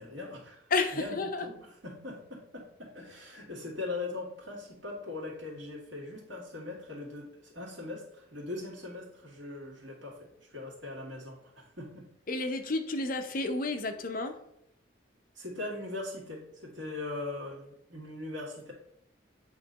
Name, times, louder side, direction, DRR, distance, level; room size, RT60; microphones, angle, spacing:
voice 1, 0.0-12.1 15.4-18.7, left 2 dB, 75° right, -2 dB, 2.2 m, -40 dB
voice 2, 0.7-1.5 12.3-14.4, left 3 dB, 45° left, 7 dB, 0.6 m, -31 dB
8.2 x 3.7 x 4.0 m, 0.79 s
head